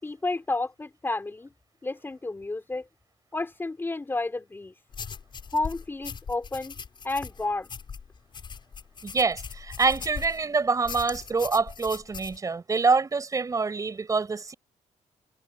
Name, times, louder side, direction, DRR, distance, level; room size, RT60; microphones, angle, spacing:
voice 1, 0.0-1.5 1.8-2.9 3.3-4.7 5.5-6.7 7.0-7.7, left 2 dB, 15° left, 4.2 m, -31 dB
sound 1, 4.9-10.5 10.8-12.4, left 6 dB, 40° left, 7.6 m, -40 dB
voice 2, 9.0-14.5, right 4 dB, 25° right, 6.1 m, -26 dB
cardioid pair, 130°, 12 cm